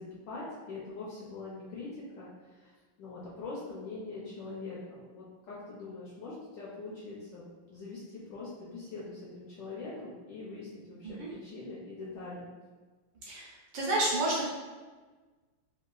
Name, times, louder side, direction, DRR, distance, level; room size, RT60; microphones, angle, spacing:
voice 1, 0.0-1.9 2.2-12.4, left 3 dB, 75° left, -6 dB, 1.0 m, -43 dB
voice 2, 13.2-14.5, right 1 dB, 70° right, -4 dB, 1.3 m, -30 dB
3.8 x 2.3 x 2.3 m, 1.3 s
omnidirectional pair, 2.4 m